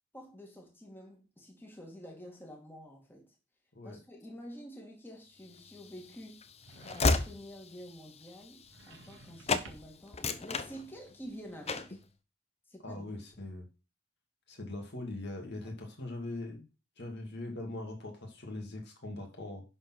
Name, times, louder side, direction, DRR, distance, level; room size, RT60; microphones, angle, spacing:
voice 1, 0.1-3.3 3.8-6.4 6.9-12.0 12.7-13.1, equal, 10° left, 2.3 m, -48 dB
Train / Slam, 5.6-9.2 9.5-9.7 10.1-11.3 11.7-12.0, left 3 dB, 30° left, 0.7 m, -33 dB
sound 1, 6.6-7.5 8.6-10.1, right 3 dB, 65° right, 1.8 m, -54 dB
voice 2, 12.8-13.6 14.5-16.6 17.0-19.6, left 2 dB, 55° left, 2.7 m, -41 dB
11.0 x 4.5 x 6.1 m
head